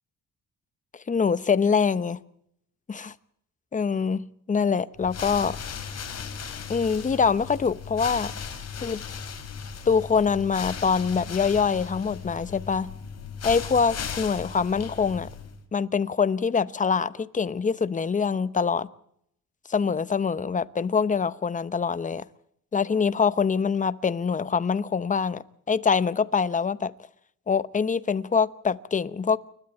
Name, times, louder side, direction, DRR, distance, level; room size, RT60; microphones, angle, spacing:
voice 1, 1.1-2.2 2.9-3.1 3.7-5.6 6.7-8.3 8.8-9.0 9.9-12.9 13.4-15.3 15.7-18.9 19.7-22.2 22.7-26.9 27.5-29.4, left 5 dB, 25° left, 0.9 m, -24 dB
sound 1, 5.0-15.6, left 6 dB, 50° left, 3.9 m, -37 dB
29.5 x 13.0 x 9.0 m
cardioid pair, 145°, 33 cm